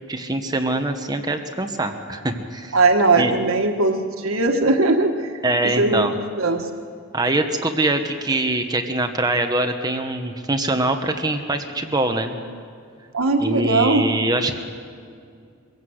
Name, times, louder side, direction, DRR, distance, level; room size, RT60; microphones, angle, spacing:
voice 1, 0.1-2.8 3.2-3.3 5.4-6.1 7.1-12.3 13.4-14.5, right 2 dB, 20° right, 6 dB, 1.2 m, -23 dB
voice 2, 2.7-5.3 5.6-6.1 6.4-6.7 13.1-14.1, right 3 dB, 90° right, 5 dB, 1.5 m, -19 dB
24.0 x 16.0 x 7.9 m, 2.3 s
head